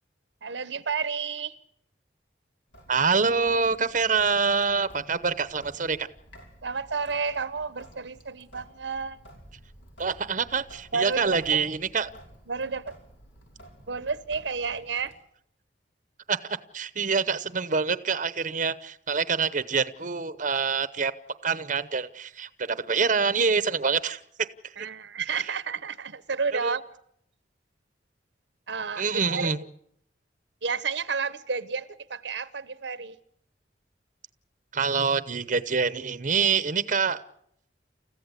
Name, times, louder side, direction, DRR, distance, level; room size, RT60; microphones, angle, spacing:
voice 1, 0.4-1.6 6.6-9.2 10.9-11.7 12.5-13.0 13.9-15.1 24.8-26.8 28.7-29.5 30.6-33.2, right 5 dB, 70° right, 15 dB, 0.9 m, -31 dB
Sink (filling or washing) / Drip, 2.7-15.2, equal, 80° left, 6.0 m, -52 dB
voice 2, 2.9-6.1 10.0-12.1 16.3-16.4 16.7-21.1 21.4-24.2 24.6-24.7 26.6-26.7 29.0-29.6 34.7-37.2, right 5 dB, 45° right, 13 dB, 0.8 m, -26 dB
29.5 x 15.0 x 8.2 m, 0.72 s
head